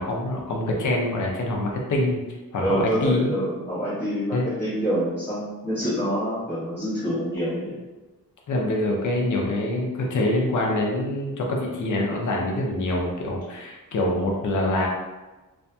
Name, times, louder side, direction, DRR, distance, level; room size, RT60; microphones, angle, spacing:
voice 1, 0.0-2.2 2.5-3.3 4.3-4.5 8.5-14.9, left 1 dB, 60° left, -1 dB, 0.6 m, -25 dB
voice 2, 2.6-7.7, equal, 5° left, -13 dB, 0.9 m, -26 dB
2.6 x 2.6 x 2.2 m, 1.2 s
wide cardioid pair, 145°, 35 cm